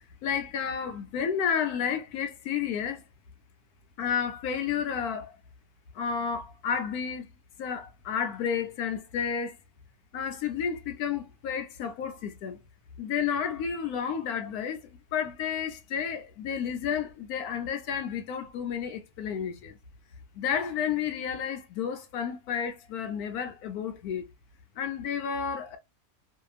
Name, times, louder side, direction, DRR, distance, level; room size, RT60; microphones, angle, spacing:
voice 1, 0.2-3.0 4.0-5.3 5.9-7.3 7.6-9.6 10.1-12.6 13.0-19.7 20.3-24.3 24.8-25.8, left 7 dB, 90° left, 1.2 m, -31 dB
2.8 x 2.5 x 2.3 m
omnidirectional pair, 1.6 m